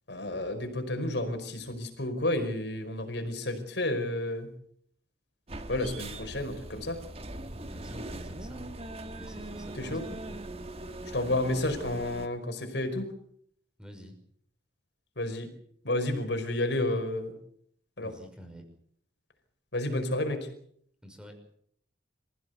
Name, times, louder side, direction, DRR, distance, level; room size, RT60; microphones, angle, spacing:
voice 1, 0.1-4.5 5.7-7.0 9.7-10.0 11.1-13.1 15.2-15.5 15.8-17.3 18.0-18.1 19.7-20.5, left 1 dB, 65° left, 6 dB, 5.2 m, -31 dB
sound 1, 5.5-12.3, right 1 dB, 35° right, 1.7 m, -41 dB
voice 2, 7.7-8.7 9.0-10.4 13.8-14.2 18.0-18.6 21.0-21.4, equal, 5° right, 5 dB, 5.7 m, -48 dB
27.0 x 16.0 x 8.1 m, 0.65 s
head